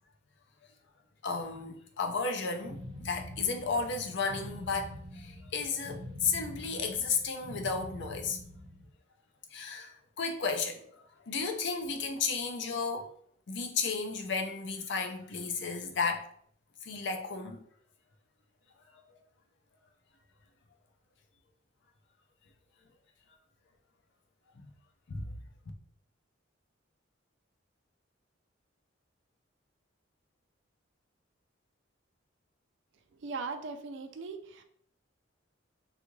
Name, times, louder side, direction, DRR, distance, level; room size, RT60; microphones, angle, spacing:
voice 1, 1.2-8.4 9.5-13.1 13.5-16.3 16.8-17.6 19.1-19.2 24.6-24.7 25.1-25.4, left 4 dB, 60° left, 0.5 m, -33 dB
sound 1, 2.6-8.9, equal, 90° right, 0.8 m, -45 dB
voice 2, 33.2-34.6, right 4 dB, 65° right, 0.4 m, -39 dB
3.5 x 2.4 x 3.0 m
head